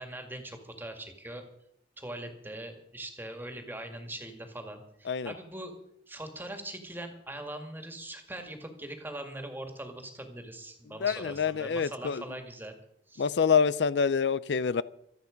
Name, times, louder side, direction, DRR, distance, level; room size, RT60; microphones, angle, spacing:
voice 1, 0.0-1.4 2.0-5.7 6.1-12.8 13.1-13.4, right 1 dB, 10° right, 5 dB, 2.1 m, -41 dB
voice 2, 11.0-12.2 13.2-14.8, left 6 dB, 75° left, 18 dB, 0.5 m, -26 dB
25.0 x 8.4 x 5.2 m, 0.73 s
head